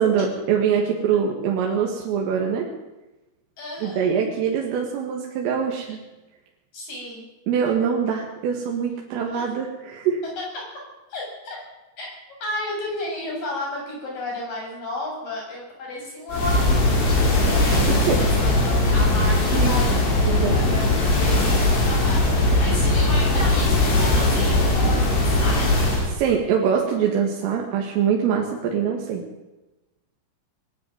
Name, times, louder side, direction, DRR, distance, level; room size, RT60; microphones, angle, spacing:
voice 1, 0.0-2.7 3.8-6.0 7.5-10.2 17.6-18.2 19.5-19.8 20.3-20.6 26.1-29.2, right 7 dB, 85° right, -1 dB, 4.8 m, -23 dB
voice 2, 3.6-4.1 6.7-7.3 9.3-9.4 10.4-10.6 11.1-11.6 12.0-12.1 12.4-25.8, left 1 dB, 45° left, -1 dB, 8.9 m, -33 dB
sound 1, 16.3-26.1, left 2 dB, 60° left, 7.0 m, -19 dB
21.0 x 14.0 x 9.5 m, 1.0 s
omnidirectional pair, 5.7 m